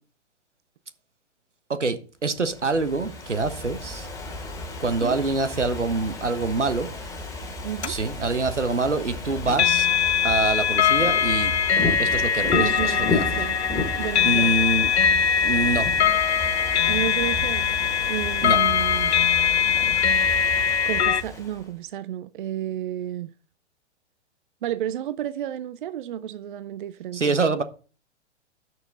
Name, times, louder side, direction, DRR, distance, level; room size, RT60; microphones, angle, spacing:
voice 1, 1.7-4.1 4.8-6.9 7.8-9.9 10.2-11.5 12.0-13.2 14.2-14.9 15.4-15.9 18.4-18.6 27.1-27.6, right 3 dB, 80° right, 1.3 m, -25 dB
Ocean / Fireworks, 2.4-21.7, left 2 dB, 10° left, 2.6 m, -33 dB
voice 2, 7.6-8.0 12.5-13.6 14.0-14.5 16.9-17.7 18.0-19.1 20.9-23.3 24.6-27.4, right 11 dB, 45° right, 0.5 m, -31 dB
sound 1, 7.8-7.9 9.5-21.2, left 7 dB, 65° left, 0.7 m, -22 dB
12.0 x 6.3 x 3.9 m
figure-of-eight pair, 110°, 35 cm